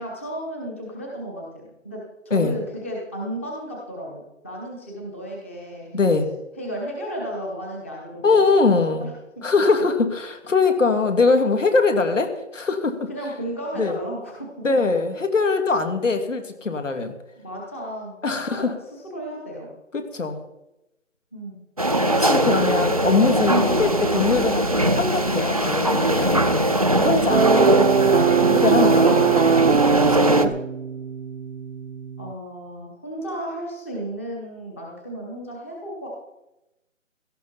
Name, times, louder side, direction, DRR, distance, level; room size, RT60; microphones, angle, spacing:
voice 1, 0.0-2.0 2.2-6.0 6.6-9.1 13.1-14.5 17.4-19.7 21.3-21.6 32.2-36.1, right 1 dB, 10° left, -2 dB, 1.0 m, -34 dB
voice 2, 5.9-6.3 8.2-9.1 9.4-13.1 13.8-14.0 14.6-17.1 18.2-18.7 19.9-20.4 22.1-26.5 27.0-27.5 28.5-29.2 30.0-30.5, left 4 dB, 70° left, 6 dB, 2.8 m, -22 dB
sound 1, 21.8-30.5, right 1 dB, 30° right, 0.6 m, -21 dB
sound 2, 27.3-32.3, right 6 dB, 55° right, 0.8 m, -20 dB
17.0 x 13.5 x 4.4 m, 0.92 s
figure-of-eight pair, 170°, 40 cm